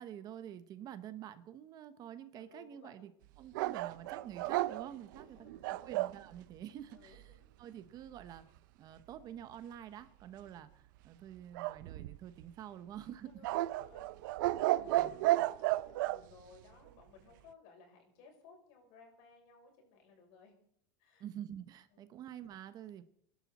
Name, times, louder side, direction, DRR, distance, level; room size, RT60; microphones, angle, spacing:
voice 1, 0.0-3.1 3.4-7.3 7.6-8.5 8.8-13.3 14.6-15.2 21.2-23.0, right 10 dB, 40° right, 12 dB, 1.0 m, -48 dB
voice 2, 2.3-3.0 5.1-6.0 6.9-7.5 10.4-10.5 13.3-20.5 21.0-21.2 21.9-22.0, left 4 dB, 65° left, 1 dB, 6.5 m, -60 dB
sound 1, 3.5-6.2 11.5-12.4 13.4-16.2, right 17 dB, 80° right, 0.6 m, -33 dB
26.5 x 11.5 x 4.2 m, 0.65 s
supercardioid pair, 150°, 10 cm